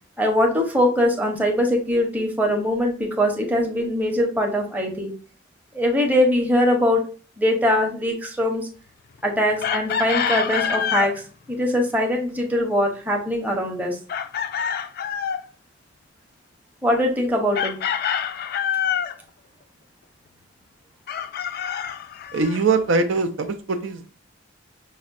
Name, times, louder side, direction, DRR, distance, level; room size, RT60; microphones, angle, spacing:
voice 1, 0.2-5.1 5.7-7.0 7.4-8.7 9.2-11.1 11.5-14.0 16.8-17.8, left 1 dB, 10° right, -1 dB, 0.7 m, -22 dB
Chicken rooster, 9.6-11.1 14.1-15.4 17.5-19.2 21.1-22.6, left 8 dB, 50° left, 0.3 m, -26 dB
voice 2, 22.3-24.1, right 4 dB, 75° right, 6 dB, 0.5 m, -22 dB
5.5 x 2.1 x 2.5 m, 0.37 s
head